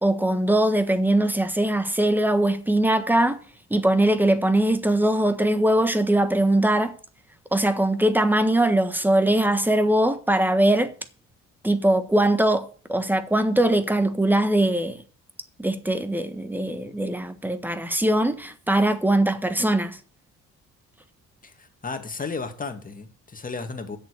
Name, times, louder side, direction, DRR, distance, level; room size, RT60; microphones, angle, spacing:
voice 1, 0.0-3.4 3.7-6.9 7.5-10.9 11.6-15.0 15.6-20.0, right 1 dB, 5° right, 1.4 m, -21 dB
voice 2, 21.4-24.0, left 4 dB, 30° left, 2.0 m, -34 dB
7.7 x 7.0 x 8.3 m
cardioid pair, 90°, 30 cm